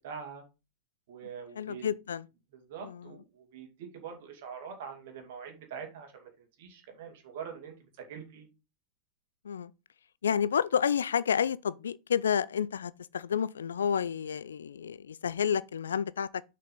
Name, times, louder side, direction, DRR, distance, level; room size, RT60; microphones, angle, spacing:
voice 1, 0.0-0.4 1.1-1.9 2.5-8.5, right 7 dB, 55° right, 2.4 m, -44 dB
voice 2, 1.6-2.3 2.8-3.1 9.4-9.7 10.2-16.4, left 8 dB, 65° left, 0.3 m, -30 dB
6.6 x 5.3 x 4.0 m
figure-of-eight pair, 90°, 0 cm